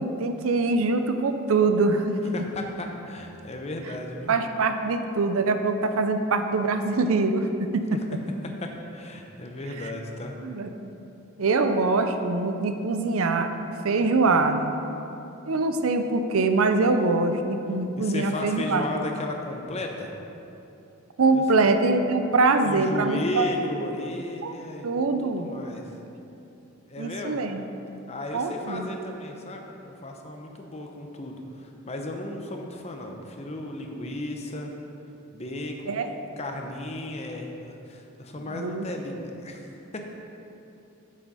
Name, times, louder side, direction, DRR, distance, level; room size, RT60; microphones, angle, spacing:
voice 1, 0.0-2.3 4.3-8.2 9.8-9.9 10.4-10.9 11.4-13.5 13.8-14.7 15.5-18.9 21.2-23.5 24.4-24.5 24.8-25.5 27.0-27.6 28.3-29.0 35.9-36.1 38.4-38.9, right 3 dB, 80° right, 8 dB, 0.6 m, -24 dB
voice 2, 2.3-4.3 8.6-10.3 18.0-20.1 21.3-21.6 22.6-24.9 25.2-25.8 26.9-27.4 28.1-34.7 35.3-40.1, left 1 dB, 30° left, 2 dB, 0.8 m, -35 dB
8.9 x 7.5 x 4.1 m, 2.9 s
head